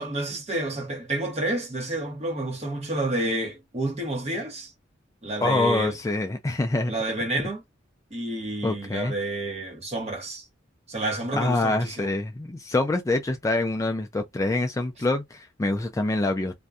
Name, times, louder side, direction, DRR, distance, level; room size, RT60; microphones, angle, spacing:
voice 1, 0.0-4.7 5.2-6.0 6.9-7.6 8.1-10.5 10.9-12.1, right 2 dB, 35° right, 0.9 m, -29 dB
voice 2, 5.4-6.9 8.6-9.1 11.3-16.5, left 2 dB, 15° left, 0.3 m, -25 dB
2.6 x 2.2 x 2.4 m
head